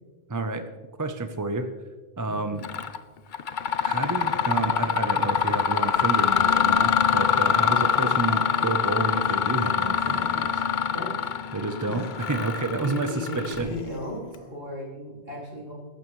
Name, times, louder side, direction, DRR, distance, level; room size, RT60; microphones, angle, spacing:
voice 1, 0.3-0.7 1.0-1.7 2.2-2.6 3.8-10.6 11.5-13.7, right 3 dB, 20° right, 8 dB, 0.6 m, -29 dB
voice 2, 2.3-2.6 10.9-11.3 11.9-12.0 12.8-15.7, left 1 dB, 65° right, -4 dB, 4.9 m, -36 dB
Mechanisms, 2.6-3.0 3.3-13.9, left 7 dB, 55° left, 0.8 m, -24 dB
sound 1, 4.1-5.0 5.7-6.5 7.6-8.7 9.9-11.1 11.8-12.8 13.5-14.5, left 1 dB, 75° left, 5.7 m, -43 dB
21.0 x 11.5 x 3.2 m, 1.3 s
omnidirectional pair, 1.1 m